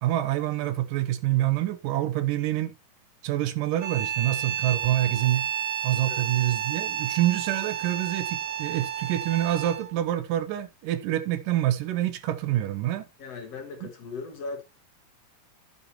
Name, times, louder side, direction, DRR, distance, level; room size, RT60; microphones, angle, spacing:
voice 1, 0.0-2.7 3.2-5.5 5.8-13.1 13.8-13.9, right 13 dB, 75° right, 2.4 m, -26 dB
sound 1, 3.8-10.0, right 10 dB, 60° right, 2.3 m, -31 dB
voice 2, 13.2-14.6, left 4 dB, 55° left, 2.1 m, -38 dB
11.5 x 8.4 x 2.9 m
omnidirectional pair, 4.0 m